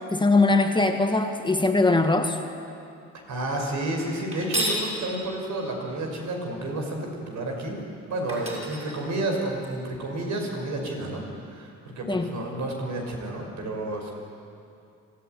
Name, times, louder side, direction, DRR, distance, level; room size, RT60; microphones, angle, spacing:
voice 1, 0.1-2.4 12.1-12.3, left 3 dB, 15° left, 5 dB, 1.5 m, -21 dB
voice 2, 3.3-7.8 8.1-14.1, right 1 dB, 70° right, 1 dB, 5.6 m, -31 dB
sound 1, 4.3-4.9 7.8-7.9 8.3-9.7, equal, 20° right, 6.5 m, -31 dB
25.5 x 14.5 x 9.3 m, 2.5 s
cardioid pair, 90°, 30 cm